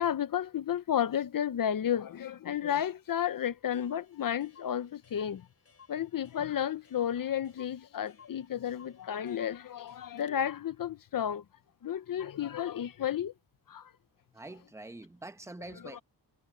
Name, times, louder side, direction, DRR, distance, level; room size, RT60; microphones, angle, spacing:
voice 1, 0.0-5.5 5.9-11.4 11.8-13.3 13.7-13.9 15.9-16.0, left 9 dB, 50° left, 0.8 m, -32 dB
Clock, 3.2-3.3 3.5-3.6 3.7-10.4, left 6 dB, 35° left, 4.1 m, -59 dB
voice 2, 14.3-16.0, right 2 dB, 5° right, 1.0 m, -45 dB
wide cardioid pair, 150°, 41 cm